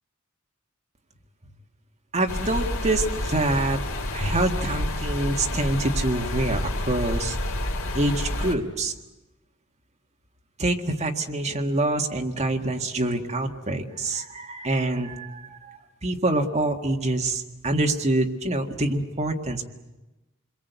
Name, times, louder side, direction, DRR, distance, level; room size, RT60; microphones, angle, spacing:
voice 1, 2.1-3.8 4.1-7.4 7.9-8.9 10.6-19.6, right 2 dB, 30° right, 3 dB, 1.9 m, -26 dB
sound 1, 2.3-8.6, left 1 dB, 65° left, 3.0 m, -29 dB
28.0 x 22.5 x 8.3 m, 1.0 s
head